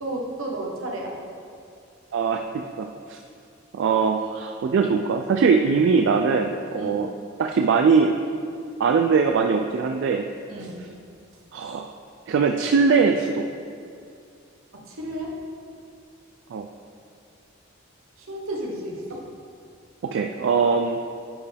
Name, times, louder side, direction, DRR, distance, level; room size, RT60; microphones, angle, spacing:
voice 1, 0.0-1.1 6.8-7.0 10.5-10.8 14.9-15.3 18.2-19.2, right 1 dB, 85° right, -1 dB, 1.2 m, -32 dB
voice 2, 2.1-3.2 3.7-7.1 7.4-8.1 8.8-10.3 10.6-10.7 11.5-11.9 12.3-13.4 16.5-16.7 20.0-21.0, right 5 dB, 60° right, 4 dB, 0.3 m, -21 dB
10.0 x 4.4 x 3.5 m, 2.4 s
head